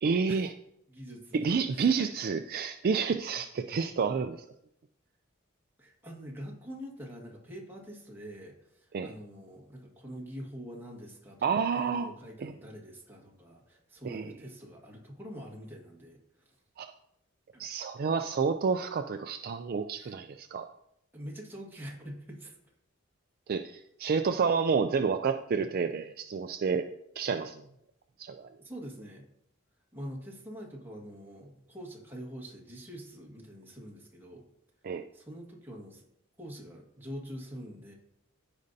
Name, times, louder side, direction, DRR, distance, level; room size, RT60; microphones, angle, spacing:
voice 1, 0.0-0.5 1.3-4.4 8.9-9.1 11.4-12.1 12.4-12.5 14.0-14.3 16.8-16.9 17.6-20.7 23.5-26.8 27.2-27.6 28.2-28.5 34.8-35.0, right 5 dB, 45° right, 7 dB, 0.4 m, -29 dB
voice 2, 0.9-1.9 5.8-11.5 11.7-16.6 17.5-17.6 19.9-20.2 21.1-22.6 28.6-29.3 29.9-34.4 35.1-36.0 36.4-37.9, equal, 10° right, -1 dB, 1.7 m, -45 dB
15.0 x 5.2 x 2.7 m, 0.75 s
head